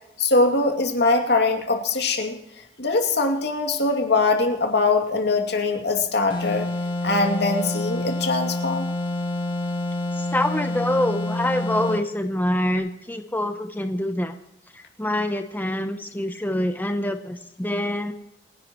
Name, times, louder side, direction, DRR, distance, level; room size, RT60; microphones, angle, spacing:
voice 1, 0.2-2.4 2.8-6.7 7.0-8.9, left 3 dB, 65° left, 4 dB, 2.5 m, -22 dB
sound 1, 6.3-12.1, left 2 dB, 30° left, 2.6 m, -27 dB
voice 2, 10.1-14.3 14.7-18.1, left 1 dB, 10° left, 6 dB, 0.8 m, -26 dB
28.5 x 11.5 x 3.1 m, 0.85 s
head